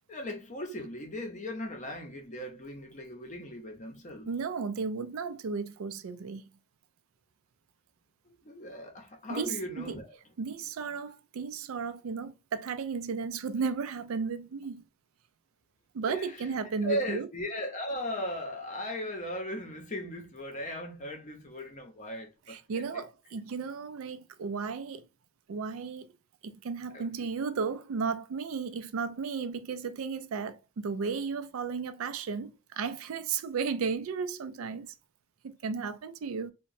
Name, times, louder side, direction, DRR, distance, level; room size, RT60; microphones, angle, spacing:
voice 1, 0.1-4.3 8.3-10.2 16.1-23.0 26.9-27.1, equal, 35° left, 0.6 m, -38 dB
voice 2, 4.3-6.4 9.3-10.0 10.4-14.8 15.9-17.3 22.5-25.0 25.5-26.1 26.4-34.9 35.4-36.5, right 5 dB, 85° right, 0.4 m, -34 dB
2.9 x 2.1 x 2.6 m
head